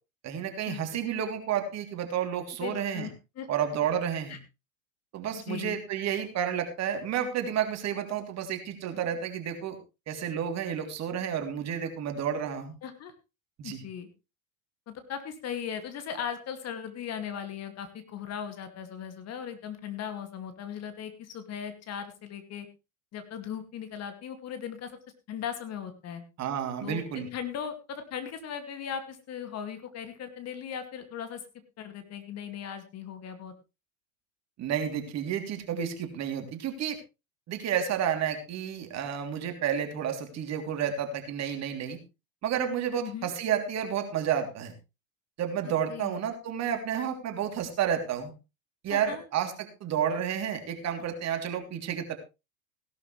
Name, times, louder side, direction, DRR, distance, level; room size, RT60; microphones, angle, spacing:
voice 1, 0.2-3.1 3.5-4.4 5.1-9.8 10.1-12.7 13.6-13.8 26.4-27.3 34.6-37.0 37.5-42.0 42.4-44.7 45.4-48.3 48.8-52.1, right 8 dB, 40° right, 5 dB, 3.3 m, -31 dB
voice 2, 2.6-3.1 3.4-3.5 4.3-4.4 5.3-5.8 12.8-13.1 13.6-14.1 14.9-22.7 23.1-25.0 25.3-26.2 26.8-31.4 31.8-33.5 43.0-43.3 45.9-46.1 48.9-49.2, left 8 dB, 40° left, 9 dB, 2.4 m, -38 dB
17.0 x 12.0 x 3.3 m, 0.28 s
hypercardioid pair, 95°, 40 cm